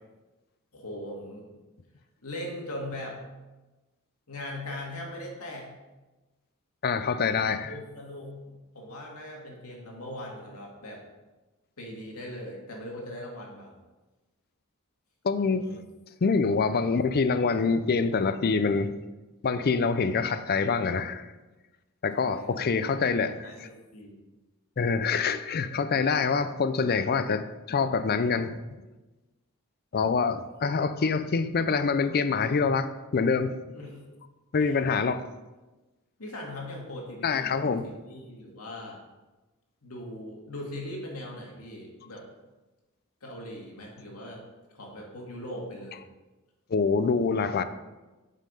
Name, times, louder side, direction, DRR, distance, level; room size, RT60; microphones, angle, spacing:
voice 1, 0.7-1.5 2.2-3.2 4.3-5.7 7.6-11.0 11.8-13.7 15.3-15.7 22.2-22.6 23.0-24.2 30.0-30.3 33.7-34.0 34.6-34.8 36.2-39.0 39.8-42.2 43.2-44.4 44.7-46.0, left 1 dB, 80° left, -1 dB, 2.2 m, -40 dB
voice 2, 6.8-7.7 15.2-15.8 16.2-18.9 19.4-21.3 22.0-23.3 24.8-28.6 29.9-33.6 34.5-35.3 37.2-37.9 46.7-47.6, left 5 dB, 45° left, 11 dB, 0.5 m, -25 dB
7.3 x 5.6 x 5.5 m, 1.1 s
head